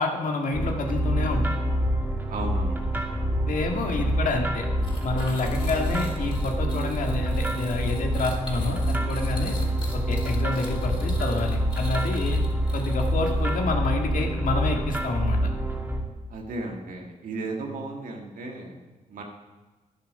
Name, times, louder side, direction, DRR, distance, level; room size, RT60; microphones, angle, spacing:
voice 1, 0.0-1.6 3.5-4.7 5.0-9.6 9.9-12.4 12.7-15.5, left 3 dB, 75° left, 2 dB, 1.9 m, -28 dB
sound 1, 0.5-16.0, equal, 15° right, 2.5 m, -26 dB
voice 2, 2.3-2.9 5.2-5.5 16.3-18.8 19.1-19.2, right 2 dB, 85° right, 1 dB, 1.8 m, -35 dB
sound 2, 4.8-13.3, left 2 dB, 35° left, 4.9 m, -41 dB
11.5 x 10.5 x 5.4 m, 1.2 s
cardioid pair, 85°, 14 cm